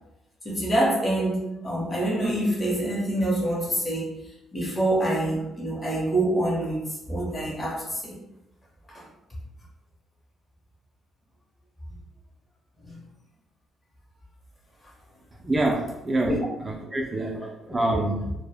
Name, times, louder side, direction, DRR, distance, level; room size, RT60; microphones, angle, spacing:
voice 1, 0.4-4.1 4.5-8.2 8.9-9.0 11.9-12.0 12.8-12.9 16.2-16.4 16.8-16.9 17.7-18.0, right 1 dB, 25° left, -5 dB, 0.8 m, -26 dB
voice 2, 15.4-17.4 17.7-18.2, right 2 dB, 25° right, 0 dB, 0.3 m, -26 dB
2.1 x 2.0 x 3.3 m, 0.93 s
cardioid pair, 90°, 0 cm